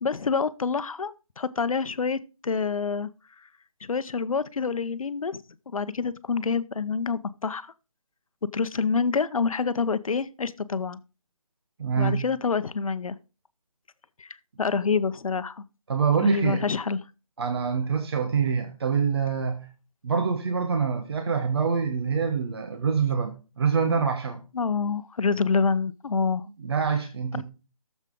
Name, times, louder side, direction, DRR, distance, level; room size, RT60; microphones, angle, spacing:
voice 1, 0.0-3.1 3.8-7.7 8.5-11.0 12.0-13.2 14.2-15.6 16.2-17.0 24.5-26.5 27.3-27.4, left 5 dB, 70° left, 0.8 m, -27 dB
voice 2, 11.8-12.2 15.9-16.6 17.4-19.7 20.0-24.5 26.6-27.4, right 6 dB, 45° right, 1.1 m, -25 dB
13.5 x 7.2 x 3.7 m
figure-of-eight pair, 165°, 18 cm